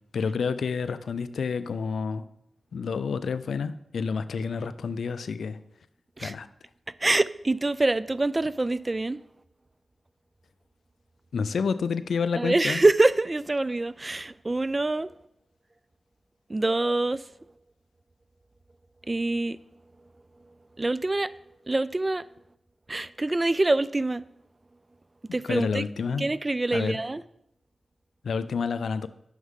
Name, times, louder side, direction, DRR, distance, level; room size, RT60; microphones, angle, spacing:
voice 1, 0.1-2.2 2.7-5.6 6.2-6.5 11.3-12.8 25.4-26.2 26.7-27.0 28.2-29.1, left 5 dB, 80° left, 0.4 m, -29 dB
voice 2, 7.0-9.2 12.3-15.1 16.5-17.2 19.1-19.6 20.8-21.3 21.7-22.2 22.9-24.2 25.3-25.8 26.2-27.2, right 2 dB, 30° right, 0.3 m, -25 dB
9.3 x 6.3 x 3.7 m
cardioid pair, 55°, 0 cm